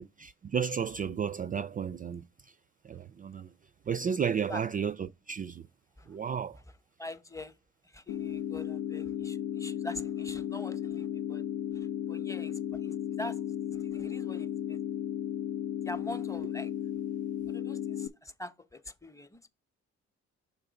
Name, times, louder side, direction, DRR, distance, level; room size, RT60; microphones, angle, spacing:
voice 1, 0.0-2.6 2.8-3.5 3.9-5.7 6.1-6.6, right 7 dB, 30° right, 0.3 m, -33 dB
voice 2, 7.0-7.6 7.8-11.4 11.7-14.8 15.8-16.7 17.5-19.5, left 1 dB, 10° left, 0.7 m, -44 dB
sound 1, 8.1-18.1, left 10 dB, 85° left, 0.6 m, -35 dB
6.3 x 3.7 x 5.1 m
cardioid pair, 90°, 30 cm